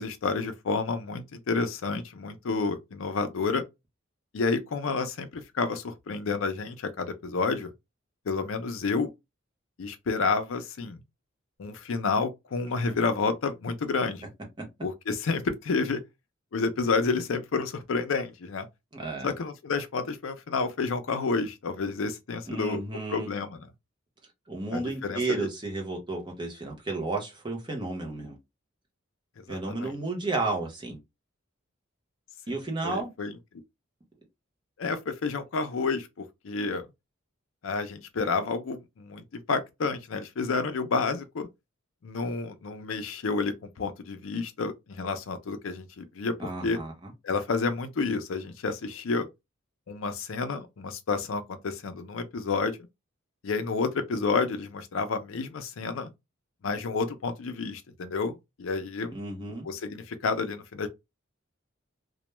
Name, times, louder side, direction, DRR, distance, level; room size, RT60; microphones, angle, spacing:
voice 1, 0.0-3.6 4.3-7.7 8.3-9.1 9.8-11.0 11.6-14.3 14.8-16.0 16.5-18.7 19.2-22.8 23.1-23.7 24.7-25.5 29.5-29.9 32.5-32.6 32.8-33.3 34.8-36.9 37.6-41.5 42.0-46.3 46.6-46.8 47.2-49.3 49.9-52.8 53.4-56.1 56.6-59.2 59.6-60.9, left 4 dB, 75° left, 0.5 m, -30 dB
voice 2, 18.9-19.3 22.5-23.3 24.5-28.4 29.5-31.0 32.5-33.1 46.4-47.1 59.1-59.7, right 3 dB, 20° right, 0.8 m, -32 dB
2.2 x 2.2 x 2.9 m
head